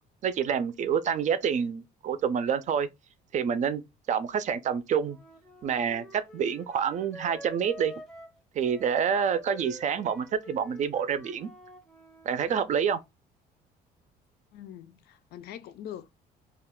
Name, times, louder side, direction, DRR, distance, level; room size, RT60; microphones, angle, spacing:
voice 1, 0.2-2.9 3.3-3.8 4.1-5.2 5.6-7.9 8.5-11.5 12.3-13.0, right 7 dB, 45° right, 0.4 m, -27 dB
Wind instrument woodwind instrument, 5.0-12.3, equal, 5° left, 0.6 m, -48 dB
voice 2, 14.5-16.1, left 10 dB, 70° left, 0.5 m, -43 dB
2.4 x 2.3 x 3.5 m
cardioid pair, 110°, 17 cm